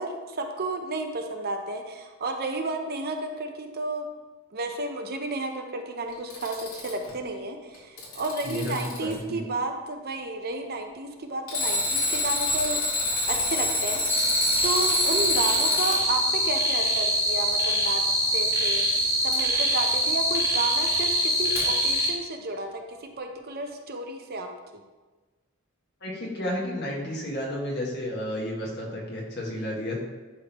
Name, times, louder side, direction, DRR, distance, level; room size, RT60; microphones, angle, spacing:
voice 1, 0.0-4.1 4.5-12.8 13.3-18.9 19.2-24.5 24.7-24.8, right 2 dB, 50° right, 4 dB, 0.7 m, -32 dB
Alarm, 6.1-7.1 7.7-9.1 11.5-16.0 19.3-19.4 21.6-21.7, left 2 dB, 85° left, 2.0 m, -27 dB
voice 2, 8.4-8.7 9.0-9.4 26.0-30.0, left 1 dB, 55° left, -3 dB, 1.6 m, -32 dB
sound 1, 14.1-22.1, equal, 15° right, 1.3 m, -24 dB
11.0 x 3.7 x 3.0 m, 1.3 s
head